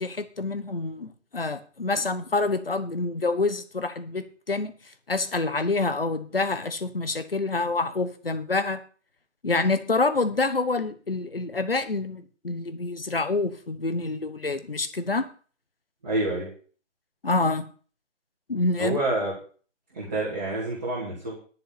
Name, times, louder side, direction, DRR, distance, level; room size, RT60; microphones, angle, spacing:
voice 1, 0.0-4.7 5.1-8.8 9.4-15.2 17.2-17.6 18.5-19.0, left 3 dB, 50° left, 10 dB, 1.3 m, -27 dB
voice 2, 16.0-16.5 18.8-19.3 19.9-21.3, right 2 dB, 10° right, -10 dB, 2.5 m, -27 dB
11.0 x 5.7 x 8.6 m, 0.41 s
figure-of-eight pair, 175°, 38 cm